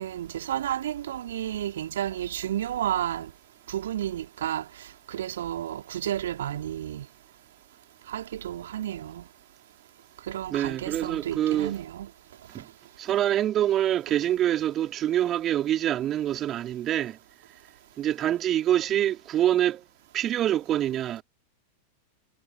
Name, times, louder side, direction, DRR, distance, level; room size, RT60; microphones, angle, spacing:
voice 1, 0.0-3.3 3.7-7.1 8.1-9.3 10.3-12.1 12.6-12.7, right 11 dB, 60° right, 3.6 m, -32 dB
voice 2, 10.5-11.7 12.5-12.7 13.0-17.2 18.0-19.8 20.1-21.2, right 11 dB, 30° right, 3.8 m, -25 dB
figure-of-eight pair, 90°, 0 cm